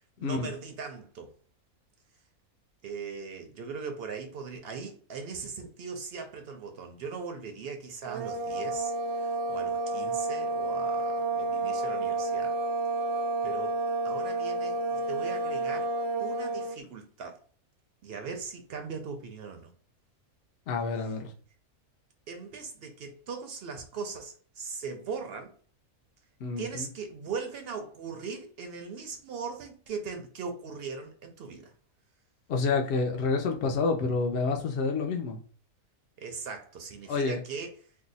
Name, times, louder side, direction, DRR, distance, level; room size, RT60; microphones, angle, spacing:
voice 1, 0.2-1.3 2.8-12.6 13.4-13.8 14.0-15.9 16.2-17.4 18.0-19.7 22.3-25.6 26.6-31.7 36.2-37.8, right 5 dB, 65° right, 0.6 m, -39 dB
sound 1, 8.1-16.8, right 3 dB, 85° right, 1.1 m, -30 dB
voice 2, 20.7-21.3 26.4-26.9 32.5-35.4 37.1-37.4, left 4 dB, 65° left, 0.7 m, -28 dB
2.7 x 2.1 x 3.9 m
omnidirectional pair, 1.5 m